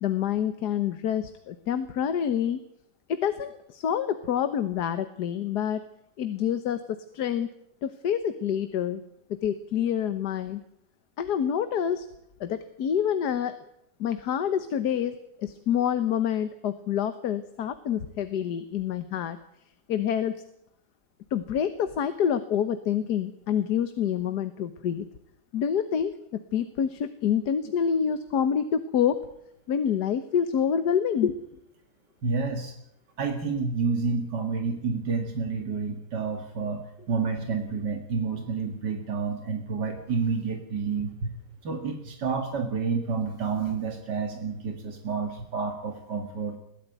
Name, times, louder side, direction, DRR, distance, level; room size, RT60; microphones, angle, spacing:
voice 1, 0.0-2.6 3.1-5.8 6.2-7.5 7.8-9.0 9.3-10.6 11.2-12.1 12.4-13.6 14.0-19.4 19.9-20.4 21.3-25.1 25.5-29.2 29.7-31.6, left 8 dB, 75° left, 10 dB, 1.6 m, -27 dB
voice 2, 32.2-32.7 33.2-41.3 41.6-46.6, right 5 dB, 85° right, 4 dB, 2.5 m, -29 dB
21.5 x 15.0 x 9.2 m, 0.78 s
omnidirectional pair, 1.8 m